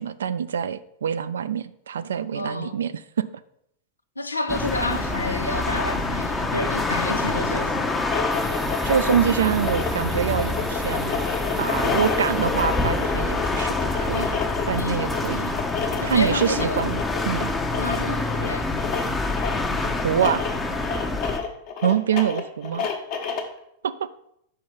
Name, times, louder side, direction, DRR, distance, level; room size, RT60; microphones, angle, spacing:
voice 1, 0.0-3.3 8.8-11.2 11.6-14.4 14.7-15.5 16.0-17.5 20.0-20.4 21.8-22.9 23.8-24.1, right 8 dB, 65° right, 0.3 m, -25 dB
voice 2, 2.3-2.8 4.2-8.0 14.8-15.1 16.0-16.8 17.8-18.7, left 2 dB, 80° left, 0.5 m, -29 dB
sound 1, 4.5-21.4, left 2 dB, 10° left, 0.7 m, -26 dB
sound 2, 7.9-23.6, left 6 dB, 45° left, 1.2 m, -31 dB
sound 3, 8.3-13.7, right 5 dB, 20° right, 0.7 m, -43 dB
5.6 x 4.6 x 5.9 m
figure-of-eight pair, 90°, 0 cm